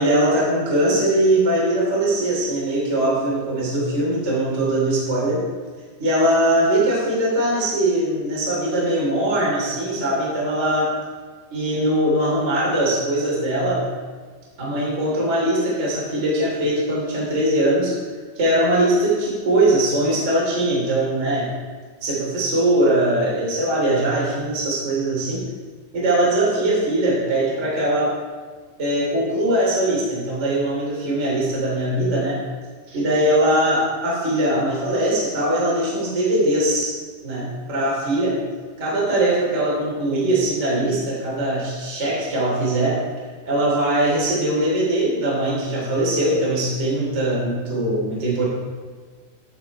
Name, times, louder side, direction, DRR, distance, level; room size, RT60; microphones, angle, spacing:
voice 1, 0.0-5.5 6.0-10.9 11.5-13.9 14.6-18.0 18.3-21.5 22.0-25.5 25.9-28.2 28.8-32.4 32.9-37.0 37.2-38.4 38.8-43.0 43.4-48.5, right 1 dB, 20° right, -5 dB, 2.3 m, -21 dB
12.0 x 6.2 x 4.7 m, 1.5 s
omnidirectional pair, 5.6 m